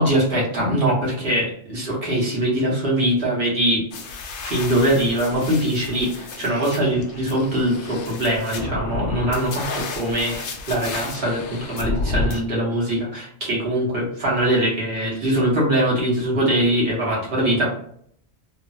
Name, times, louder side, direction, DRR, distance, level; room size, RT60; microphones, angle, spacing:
voice 1, 0.0-3.8 4.4-17.7, right 1 dB, 60° right, -4 dB, 1.3 m, -22 dB
sound 1, 3.9-12.4, left 2 dB, 85° left, 0.9 m, -31 dB
3.1 x 2.0 x 2.4 m, 0.64 s
omnidirectional pair, 1.1 m